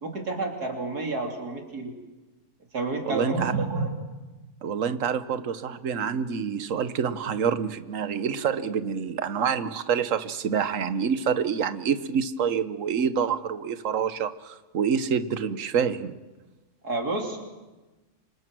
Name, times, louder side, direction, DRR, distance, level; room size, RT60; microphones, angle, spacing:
voice 1, 0.0-1.9 2.7-3.9 16.8-17.4, right 3 dB, 90° right, 2 dB, 3.8 m, -29 dB
voice 2, 3.0-3.5 4.6-16.2, right 7 dB, 60° right, 12 dB, 1.4 m, -27 dB
28.0 x 26.0 x 6.2 m, 1.1 s
omnidirectional pair, 1.6 m